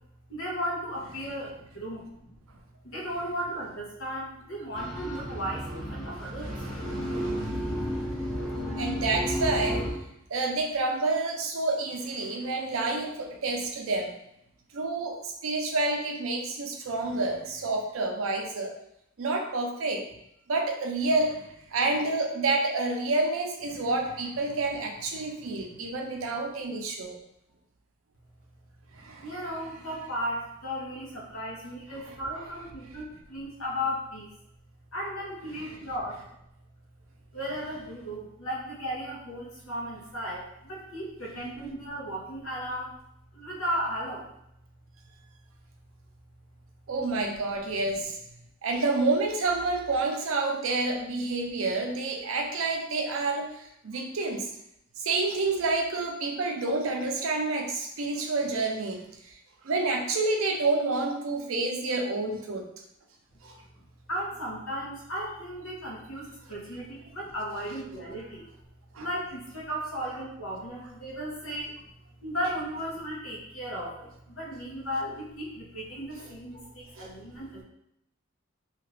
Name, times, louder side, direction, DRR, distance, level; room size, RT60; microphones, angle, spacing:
voice 1, 0.3-2.3 2.8-7.0 29.2-34.3 34.9-36.3 37.3-43.0 43.3-44.3 64.1-68.5 68.9-71.9 72.2-77.6, equal, 85° left, -4 dB, 1.0 m, -35 dB
sound 1, 4.7-9.9, equal, ahead, 0.5 m, -32 dB
voice 2, 6.2-8.4 8.7-10.0 10.3-14.1 14.7-18.7 19.2-20.0 20.5-27.2 28.9-29.4 31.9-32.2 35.5-35.8 46.9-48.2 48.6-54.5 55.0-59.4 59.6-62.7 63.4-63.6 68.9-69.1 76.5-76.6 76.9-77.1, right 3 dB, 80° right, 3 dB, 0.5 m, -29 dB
2.8 x 2.4 x 3.2 m, 0.78 s
head